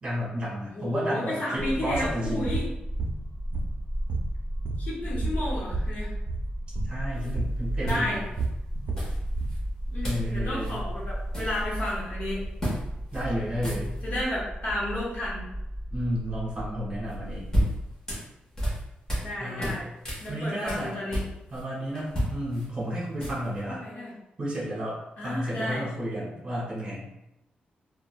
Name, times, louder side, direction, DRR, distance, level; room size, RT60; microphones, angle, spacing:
voice 1, 0.0-2.6 6.8-8.2 10.0-10.8 13.1-13.9 15.9-17.5 19.4-19.8 20.3-21.0 21.5-23.8 24.4-27.1, equal, 30° right, -6 dB, 1.4 m, -32 dB
voice 2, 0.7-2.7 4.8-6.1 7.8-8.2 9.9-12.4 14.0-15.5 19.2-19.9 20.2-21.2 23.7-24.1 25.2-25.8, left 1 dB, 55° left, -6 dB, 1.1 m, -32 dB
sound 1, 1.6-18.0, equal, ahead, 1.5 m, -34 dB
sound 2, 1.9-2.1 2.5-2.7 3.0-3.8 4.1-5.9 6.2-6.5 6.8-7.0 7.4-7.6 7.9-9.6, right 4 dB, 80° right, 0.4 m, -32 dB
sound 3, 7.2-7.3 7.8-8.4 8.9-9.6 10.0-10.3 10.6-10.8 11.1-12.0 12.6-12.8 13.1-13.2 13.5-14.2 17.1-19.3 19.6-21.6 21.9-23.6, equal, 20° left, 1.2 m, -31 dB
3.6 x 2.4 x 2.3 m, 0.87 s
wide cardioid pair, 140°, 3 cm